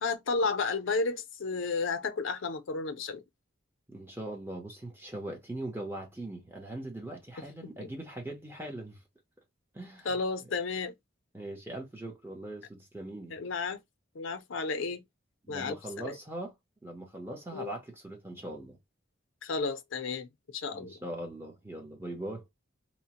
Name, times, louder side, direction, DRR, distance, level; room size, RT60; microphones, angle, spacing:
voice 1, 0.0-3.2 7.6-7.9 10.0-10.9 13.3-13.8 14.1-15.0 15.5-16.1 17.5-17.7 19.4-20.3 20.5-20.9, left 4 dB, 80° left, 0.5 m, -32 dB
voice 2, 3.9-9.0 9.7-10.2 11.3-13.4 15.5-16.6 16.8-18.8 20.7-22.4, right 1 dB, 10° right, 0.7 m, -41 dB
2.8 x 2.1 x 2.8 m
head